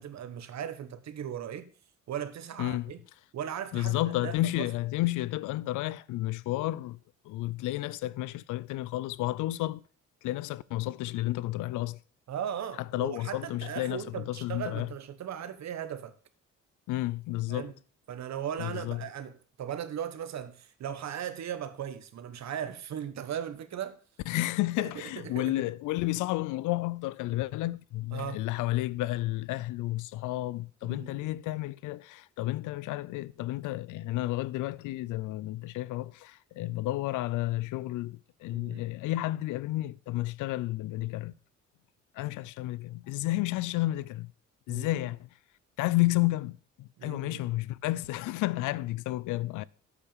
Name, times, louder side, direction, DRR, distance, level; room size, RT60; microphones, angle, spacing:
voice 1, 0.0-1.7 2.1-3.0 3.3-4.7 12.3-16.1 17.5-17.7 18.1-24.0 24.8-25.5 28.1-28.4 30.8-31.3 38.5-38.8 44.7-45.0 47.0-47.4, right 9 dB, 65° right, 1.2 m, -38 dB
voice 2, 2.6-2.9 3.7-7.0 7.2-9.8 10.2-12.0 12.8-14.9 16.9-17.7 18.6-19.0 24.3-41.3 42.1-44.3 44.7-45.3 45.8-49.6, left 17 dB, 90° left, 0.5 m, -31 dB
8.2 x 5.7 x 7.2 m
cardioid pair, 90°, 30 cm